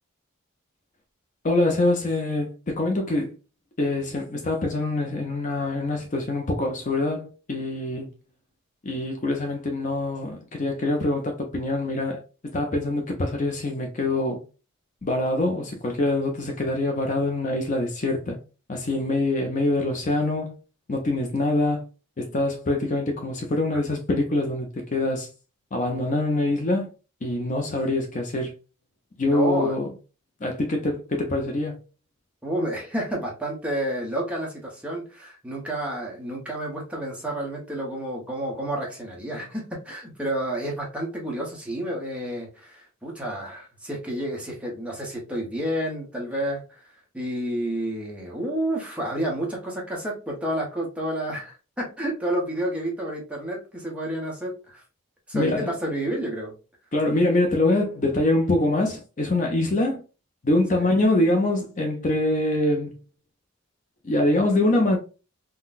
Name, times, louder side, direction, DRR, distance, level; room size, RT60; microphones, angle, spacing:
voice 1, 1.4-3.3 3.8-8.1 8.8-12.2 12.5-14.4 15.0-18.4 18.7-20.6 20.9-21.9 22.2-25.3 25.7-26.9 27.2-28.5 29.2-29.9 30.4-31.8 55.3-55.7 56.9-60.0 60.4-62.9 64.0-65.0, left 2 dB, 35° left, 0.5 m, -24 dB
voice 2, 29.3-29.8 32.4-46.8 47.1-54.8 55.3-56.5 60.7-60.9, right 1 dB, 5° right, 0.8 m, -30 dB
3.8 x 2.2 x 2.4 m
head